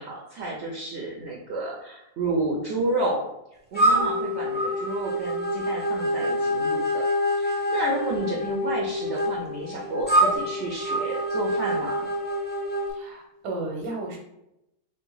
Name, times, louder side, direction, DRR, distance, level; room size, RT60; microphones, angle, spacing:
voice 1, 0.0-3.3 3.7-7.0 7.4-12.1, right 2 dB, 55° right, -2 dB, 0.9 m, -30 dB
sound 1, 3.7-12.9, equal, 10° left, 0.5 m, -26 dB
voice 2, 13.0-14.2, right 2 dB, 85° right, 1 dB, 1.6 m, -33 dB
3.8 x 3.3 x 3.9 m, 0.85 s
omnidirectional pair, 1.7 m